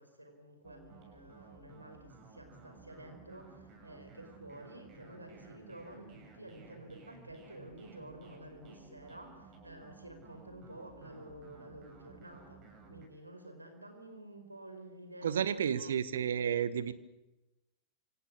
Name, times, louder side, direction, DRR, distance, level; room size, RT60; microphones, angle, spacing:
voice 1, 0.0-15.8, right 1 dB, 85° right, 6 dB, 5.0 m, -51 dB
sound 1, 0.6-13.1, right 3 dB, 35° right, 7.3 m, -55 dB
voice 2, 15.2-16.9, right 8 dB, 65° right, 15 dB, 1.4 m, -31 dB
28.5 x 26.0 x 6.5 m, 0.97 s
figure-of-eight pair, 90°, 0 cm